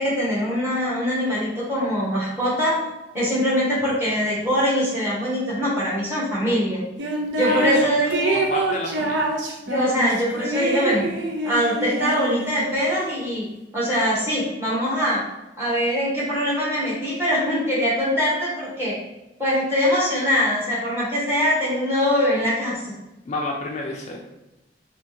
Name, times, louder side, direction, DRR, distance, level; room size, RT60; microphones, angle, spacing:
voice 1, 0.0-2.8 3.1-6.8 7.4-8.4 9.6-11.0 11.4-13.4 13.7-15.2 15.6-19.0 19.4-22.9, equal, 15° right, -8 dB, 1.2 m, -22 dB
sound 1, 7.0-7.8 8.1-12.8, right 2 dB, 80° right, 0.6 m, -25 dB
voice 2, 7.5-7.8 8.3-9.3 23.3-24.2, left 2 dB, 40° left, 0 dB, 0.4 m, -30 dB
3.4 x 2.8 x 2.9 m, 1.0 s
head